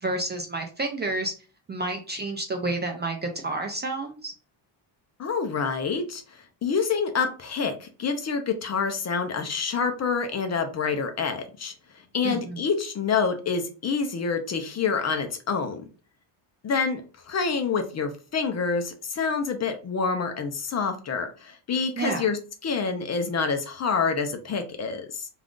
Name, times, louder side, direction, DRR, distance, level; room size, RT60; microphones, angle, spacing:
voice 1, 0.0-1.3 1.7-4.3 12.2-12.6 22.0-22.2, right 2 dB, 25° right, 3 dB, 0.4 m, -30 dB
voice 2, 5.2-11.7 12.1-15.8 16.6-25.3, left 5 dB, 35° left, 6 dB, 0.5 m, -27 dB
2.4 x 2.4 x 3.5 m, 0.36 s
cardioid pair, 120°, 48 cm